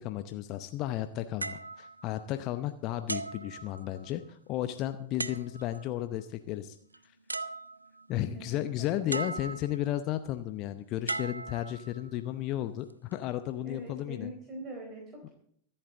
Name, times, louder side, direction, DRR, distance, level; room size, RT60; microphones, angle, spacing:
voice 1, 0.0-6.8 8.1-14.3, left 13 dB, 45° left, 10 dB, 0.7 m, -34 dB
sound 1, 1.4-2.6 3.1-4.2 5.2-5.9 6.9-7.0 7.3-8.1 9.1-9.9 11.1-12.2 12.9-13.2, right 3 dB, 85° right, 0.5 m, -38 dB
voice 2, 8.1-9.4 13.6-15.3, equal, 35° right, 0 dB, 4.3 m, -43 dB
24.5 x 8.9 x 3.9 m, 0.65 s
figure-of-eight pair, 85°, 0 cm